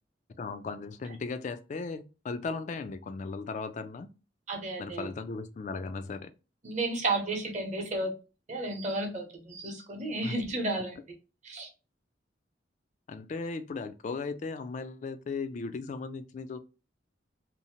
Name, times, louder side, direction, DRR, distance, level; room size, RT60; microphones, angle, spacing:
voice 1, 0.4-4.1 4.8-6.3 10.2-10.4 13.1-16.6, left 4 dB, 40° left, 0.3 m, -37 dB
voice 2, 4.5-5.1 6.6-8.1 8.5-11.0 11.4-11.7, right 2 dB, 40° right, 0.8 m, -32 dB
2.6 x 2.0 x 2.8 m
head